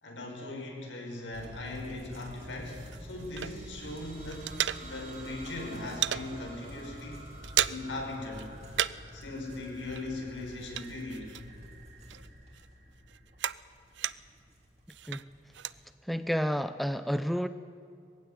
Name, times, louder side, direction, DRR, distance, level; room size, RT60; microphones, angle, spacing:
voice 1, 0.0-7.2 7.7-8.5 9.1-11.4, left 2 dB, 85° left, 1 dB, 5.5 m, -39 dB
sound 1, 1.3-15.9, equal, 35° right, 3.3 m, -49 dB
sound 2, 2.4-3.9 4.1-5.3 5.5-6.3 6.7-6.9 7.2-8.0 8.3-9.2 9.4-11.8 12.1-14.4 14.9-15.8, right 11 dB, 80° right, 0.6 m, -35 dB
sound 3, 2.9-13.5, right 2 dB, 50° right, 5.0 m, -51 dB
voice 2, 16.0-17.5, equal, ahead, 11 dB, 0.5 m, -30 dB
21.5 x 16.0 x 9.5 m, 2.5 s
head